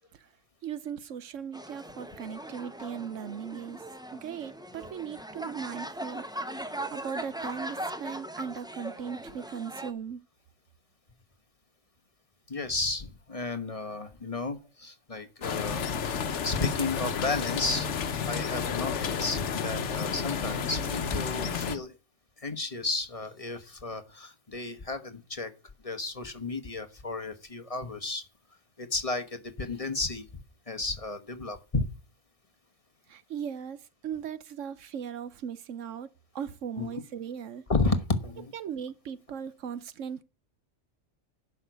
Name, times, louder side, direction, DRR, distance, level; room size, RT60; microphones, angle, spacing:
voice 1, 0.6-3.8 4.1-6.2 6.9-10.2 33.1-36.1 36.3-37.6 38.5-40.2, right 8 dB, 80° right, 1.2 m, -38 dB
sound 1, 1.5-9.9, right 1 dB, 5° right, 0.8 m, -39 dB
voice 2, 12.5-16.2 16.4-17.9 18.3-21.9 22.4-25.5 25.8-28.2 28.8-30.2 30.7-31.8 36.8-36.9 37.7-38.5, left 3 dB, 30° left, 1.2 m, -33 dB
sound 2, 15.4-21.8, left 6 dB, 70° left, 1.2 m, -31 dB
11.0 x 5.9 x 8.0 m
omnidirectional pair, 1.3 m